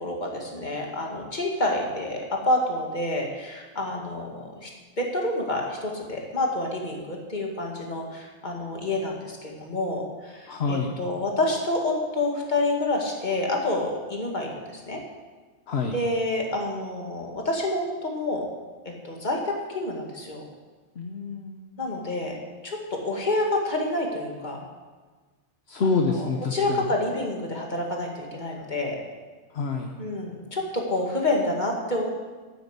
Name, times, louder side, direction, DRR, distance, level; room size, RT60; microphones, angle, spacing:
voice 1, 0.0-4.7 5.0-15.0 15.8-18.5 18.8-20.5 21.8-22.4 22.6-24.7 25.8-29.0 30.0-32.1, left 2 dB, 40° left, 0 dB, 2.2 m, -28 dB
voice 2, 10.5-10.9 15.7-15.9 21.0-21.8 25.7-26.9 29.5-29.9, left 4 dB, 65° left, 2 dB, 1.2 m, -27 dB
9.6 x 9.1 x 8.1 m, 1.4 s
omnidirectional pair, 1.2 m